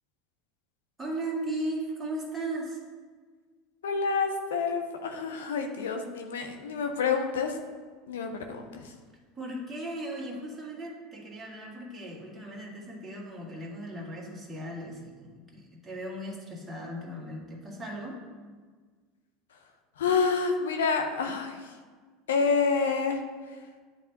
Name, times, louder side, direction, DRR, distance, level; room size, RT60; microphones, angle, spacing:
voice 1, 1.0-2.8 9.3-18.2, right 1 dB, 15° right, -4 dB, 1.7 m, -37 dB
voice 2, 3.8-7.6 8.1-8.9 20.0-21.7 22.3-23.2, left 5 dB, 75° left, 5 dB, 0.7 m, -28 dB
10.0 x 3.4 x 2.7 m, 1.5 s
hypercardioid pair, 75°, 0 cm